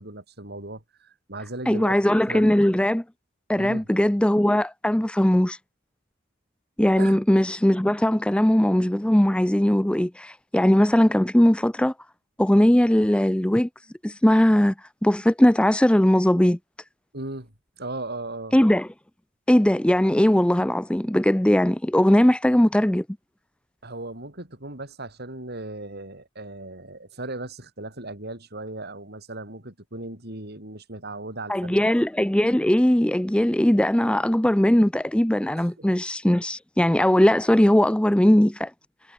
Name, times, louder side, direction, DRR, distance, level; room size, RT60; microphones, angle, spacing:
voice 1, 0.0-2.0 2.3-2.6 3.6-3.9 7.0-7.2 17.1-18.6 23.8-31.9 35.6-35.9, right 2 dB, 55° right, 7.2 m, -37 dB
voice 2, 1.7-3.0 3.5-5.6 6.8-11.9 12.4-13.7 14.0-14.7 15.0-16.6 18.5-18.9 19.5-23.0 31.5-38.7, left 1 dB, 5° left, 0.5 m, -19 dB
head